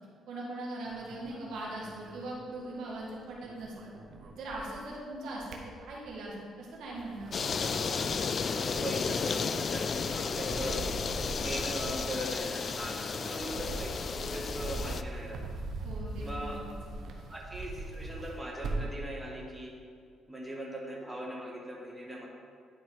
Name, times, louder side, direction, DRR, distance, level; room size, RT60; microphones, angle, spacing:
voice 1, 0.3-3.7 4.3-7.6 15.8-16.5 16.9-17.0, right 2 dB, 85° right, -4 dB, 1.9 m, -40 dB
sound 1, 0.8-3.0 3.3-4.9 5.3-6.3 6.8-19.0, right 2 dB, 70° right, 1.0 m, -42 dB
sound 2, 7.3-15.0, left 5 dB, 45° left, 0.3 m, -33 dB
voice 2, 7.6-8.1 8.4-10.9 11.4-15.4 16.2-17.0 17.3-19.8 20.3-22.3, right 1 dB, 10° right, -2 dB, 1.4 m, -40 dB
10.5 x 3.7 x 4.9 m, 2.2 s
cardioid pair, 90°, 0 cm